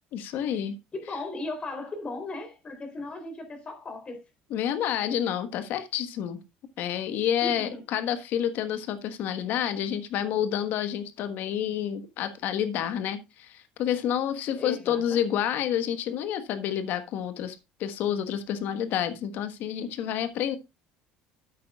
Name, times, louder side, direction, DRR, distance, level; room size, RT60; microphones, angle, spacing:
voice 1, 0.1-0.7 4.5-6.4 6.8-20.6, left 9 dB, 65° left, 1.4 m, -29 dB
voice 2, 0.9-4.2 7.4-7.8 14.6-15.2, left 2 dB, 30° left, 3.5 m, -36 dB
13.0 x 8.4 x 2.4 m
supercardioid pair, 100°, 4 cm